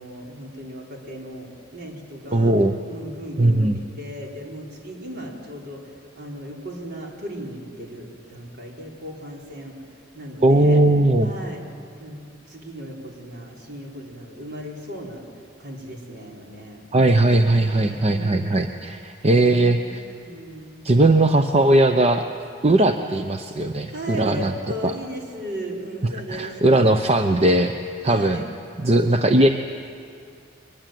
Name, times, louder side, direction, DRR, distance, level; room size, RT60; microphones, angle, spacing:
voice 1, 0.0-2.5 2.9-9.7 10.1-10.8 11.2-11.6 12.0-15.2 15.6-16.8 17.5-18.4 19.4-20.8 23.9-26.9 28.0-28.5, equal, 60° right, -1 dB, 4.4 m, -36 dB
voice 2, 2.3-2.7 3.4-3.8 10.4-11.3 16.9-20.0 20.8-22.2 22.6-24.5 24.8-24.9 26.3-27.7 28.0-28.4 28.8-29.5, right 2 dB, 35° right, 6 dB, 0.8 m, -18 dB
23.0 x 20.5 x 9.3 m, 2.3 s
head